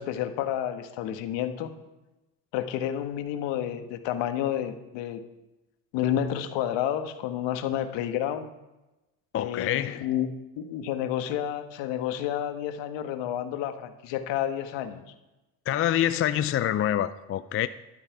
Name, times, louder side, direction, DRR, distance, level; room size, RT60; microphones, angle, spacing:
voice 1, 0.0-1.8 2.5-5.2 5.9-8.5 9.4-10.3 10.6-15.0, left 10 dB, 60° left, 1.5 m, -30 dB
voice 2, 9.3-10.1 15.7-17.7, left 11 dB, 30° left, 0.5 m, -26 dB
12.0 x 8.8 x 4.7 m
hypercardioid pair, 80°, 48 cm